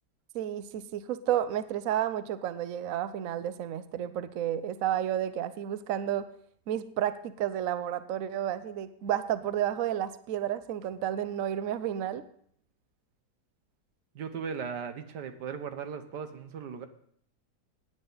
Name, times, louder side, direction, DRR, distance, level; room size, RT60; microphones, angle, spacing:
voice 1, 0.3-6.3 6.7-12.2, right 11 dB, 65° right, 13 dB, 0.9 m, -31 dB
voice 2, 14.2-16.9, right 6 dB, 80° right, 8 dB, 1.7 m, -37 dB
17.0 x 9.6 x 4.0 m, 0.63 s
omnidirectional pair, 1.8 m